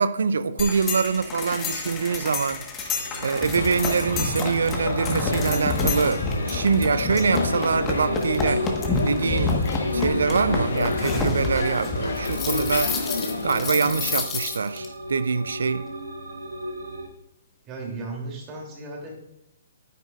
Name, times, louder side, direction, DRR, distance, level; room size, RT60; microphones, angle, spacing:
voice 1, 0.0-2.6 3.2-8.7 9.0-9.6 9.9-12.9 13.4-15.9, right 5 dB, 70° right, 0.5 m, -24 dB
sound 1, 0.6-14.9, left 3 dB, 20° left, 1.4 m, -29 dB
sound 2, 2.8-17.1, equal, 90° right, 2.3 m, -36 dB
sound 3, 3.5-14.2, left 3 dB, 75° left, 1.4 m, -30 dB
voice 2, 17.6-19.2, right 2 dB, 25° right, 3.0 m, -35 dB
9.4 x 9.3 x 2.5 m
figure-of-eight pair, 135°, 0 cm